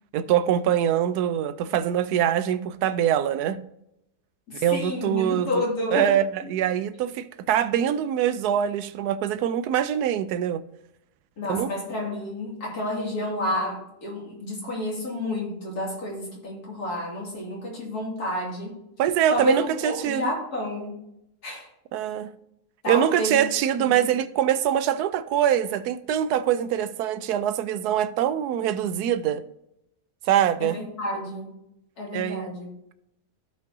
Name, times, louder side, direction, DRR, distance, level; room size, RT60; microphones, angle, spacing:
voice 1, 0.1-3.6 4.6-5.6 5.9-10.6 11.5-11.7 19.0-20.2 21.9-22.3 22.9-29.4 30.3-30.8 32.1-32.5, right 10 dB, 85° right, 1.1 m, -24 dB
voice 2, 4.5-6.1 6.4-6.5 11.4-18.8 19.3-21.0 21.4-21.7 22.8-23.4 23.8-24.0 30.6-31.5 32.0-32.7, left 1 dB, 80° left, 3.1 m, -30 dB
14.5 x 5.3 x 2.7 m
omnidirectional pair, 1.6 m